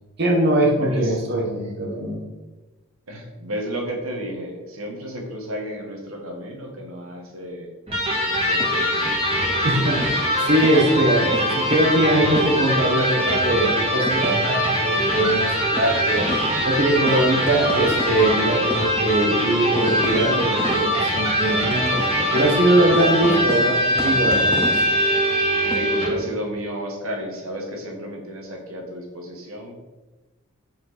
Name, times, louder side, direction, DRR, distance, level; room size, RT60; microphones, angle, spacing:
voice 1, 0.2-2.2 9.6-16.3 16.6-22.0 22.3-24.8, right 1 dB, 50° right, -1 dB, 1.2 m, -21 dB
voice 2, 0.7-1.2 3.1-7.7 8.2-9.1 25.7-29.8, equal, 85° right, 1 dB, 1.8 m, -32 dB
Electric guitar, 7.9-26.2, equal, 30° right, 2.0 m, -22 dB
sound 1, 8.6-9.7 10.0-13.1 13.5-13.6 14.0-25.8, left 1 dB, 10° left, 0.7 m, -34 dB
5.8 x 5.2 x 6.0 m, 1.2 s
head